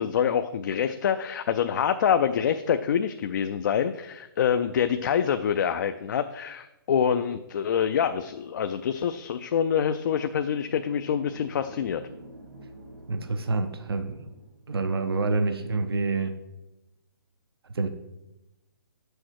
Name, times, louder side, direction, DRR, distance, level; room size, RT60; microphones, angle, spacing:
voice 1, 0.0-12.0, left 8 dB, 50° left, 9 dB, 0.4 m, -26 dB
sound 1, 9.8-14.7, right 1 dB, 70° right, 1.7 m, -48 dB
voice 2, 13.1-14.3 14.7-16.4 17.7-17.9, right 3 dB, 85° right, 8 dB, 0.8 m, -27 dB
7.6 x 6.3 x 4.7 m, 0.94 s
hypercardioid pair, 150°, 12 cm